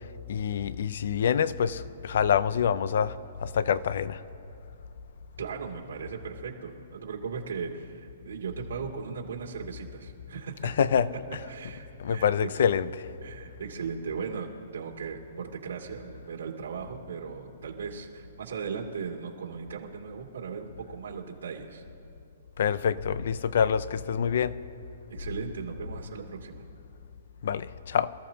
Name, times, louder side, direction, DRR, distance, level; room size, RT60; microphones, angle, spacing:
voice 1, 0.3-4.2 10.6-11.1 12.0-13.1 22.6-24.6 27.4-28.1, left 8 dB, 65° left, 0.6 m, -26 dB
voice 2, 5.4-10.7 11.5-12.5 13.2-21.8 25.1-26.6, right 6 dB, 85° right, 2.5 m, -37 dB
27.0 x 14.0 x 2.9 m
hypercardioid pair, 155°, 0 cm